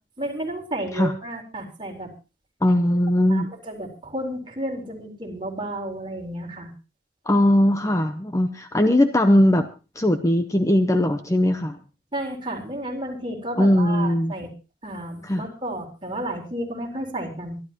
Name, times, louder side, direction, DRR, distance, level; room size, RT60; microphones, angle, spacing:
voice 1, 0.2-2.1 3.3-6.7 12.1-14.5 14.8-17.6, right 1 dB, 25° right, 1 dB, 4.0 m, -32 dB
voice 2, 2.6-3.5 7.3-9.7 10.0-11.8 13.6-14.3 15.2-15.4, left 1 dB, 15° left, 7 dB, 0.8 m, -19 dB
25.0 x 12.0 x 3.0 m, 0.32 s
head